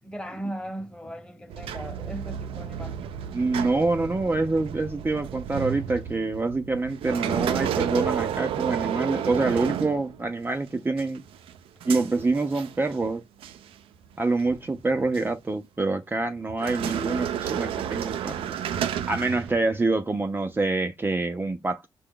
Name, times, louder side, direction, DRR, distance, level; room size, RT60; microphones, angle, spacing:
voice 1, 0.0-3.1, right 1 dB, 10° left, 1.1 m, -37 dB
sound 1, 1.5-10.5 11.0-13.1 13.4-13.7 14.4-15.3 16.5-19.9, right 9 dB, 90° right, 0.4 m, -31 dB
voice 2, 3.3-11.2 11.9-13.2 14.2-18.4 19.1-21.9, right 3 dB, 25° right, 0.6 m, -26 dB
5.9 x 2.2 x 3.7 m
cardioid pair, 70°, 9 cm